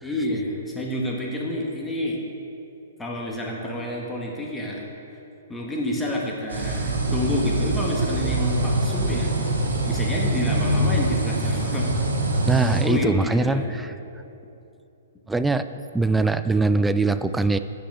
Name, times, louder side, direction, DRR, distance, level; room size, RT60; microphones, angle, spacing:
voice 1, 0.0-2.2 3.0-4.9 5.5-9.3 9.8-11.9 12.2-13.7, left 1 dB, 10° left, -2 dB, 1.6 m, -29 dB
sound 1, 6.5-12.8, right 2 dB, 80° right, 1.5 m, -24 dB
voice 2, 12.4-13.9 15.3-15.6 15.9-17.6, right 3 dB, 5° right, 11 dB, 0.3 m, -22 dB
8.4 x 6.0 x 6.2 m, 2.8 s
figure-of-eight pair, 120°, 0 cm